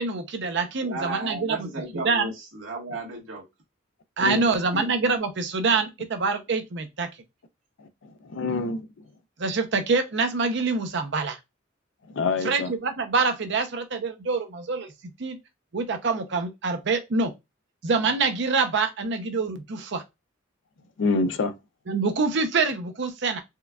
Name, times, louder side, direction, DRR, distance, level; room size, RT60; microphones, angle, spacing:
voice 1, 0.0-1.7 1.9-2.3 4.2-7.1 9.4-11.4 12.4-14.9 15.2-15.4 15.7-17.3 17.8-20.0 21.9-23.4, right 4 dB, 65° right, 0.6 m, -25 dB
voice 2, 0.8-3.4 4.7-5.1, right 2 dB, 85° right, 1.4 m, -34 dB
voice 3, 4.2-4.5 7.8-8.9 12.1-12.7 21.0-21.5, left 3 dB, 65° left, 0.4 m, -26 dB
4.4 x 2.3 x 2.3 m
head